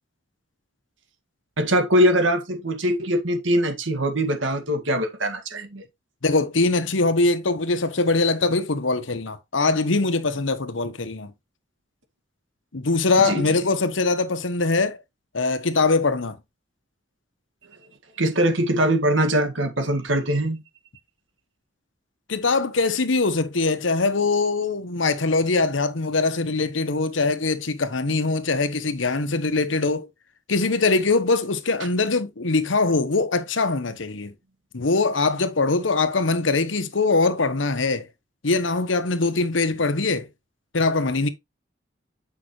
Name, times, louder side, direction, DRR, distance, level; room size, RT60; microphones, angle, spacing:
voice 1, 1.6-5.8 13.2-13.5 18.2-20.6, equal, 85° right, 1.9 m, -22 dB
voice 2, 6.2-11.3 12.7-15.0 15.3-16.4 22.3-30.1 30.5-34.3 34.7-38.1 38.4-40.3 40.7-41.3, left 3 dB, 85° left, 1.1 m, -22 dB
8.8 x 5.8 x 3.1 m
head